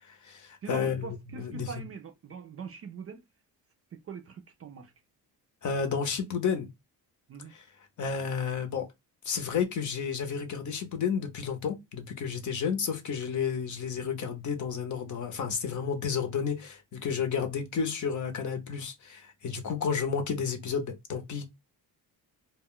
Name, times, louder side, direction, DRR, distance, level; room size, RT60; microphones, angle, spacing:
voice 1, 0.1-1.7 5.6-6.7 7.5-7.6 8.0-8.9 9.2-21.6, left 6 dB, 50° left, 0.8 m, -31 dB
voice 2, 0.6-3.2 3.9-4.9 7.3-7.5 17.3-17.5, right 6 dB, 35° right, 0.4 m, -43 dB
2.2 x 2.2 x 3.6 m
cardioid pair, 105°, 40 cm